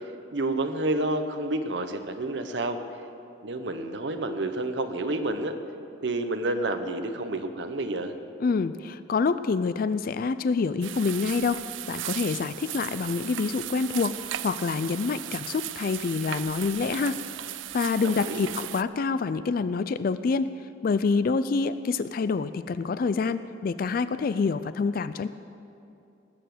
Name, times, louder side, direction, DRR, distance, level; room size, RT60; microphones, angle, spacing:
voice 1, 0.3-2.8 3.4-5.6 6.0-8.1 18.0-18.4, right 2 dB, 65° right, 7 dB, 0.9 m, -29 dB
voice 2, 8.4-11.6 11.9-17.2 17.7-20.5 20.8-25.3, left 4 dB, 50° left, 13 dB, 0.4 m, -27 dB
sound 1, 10.8-18.8, right 14 dB, 85° right, 0.4 m, -37 dB
20.0 x 7.0 x 7.8 m, 2.7 s
head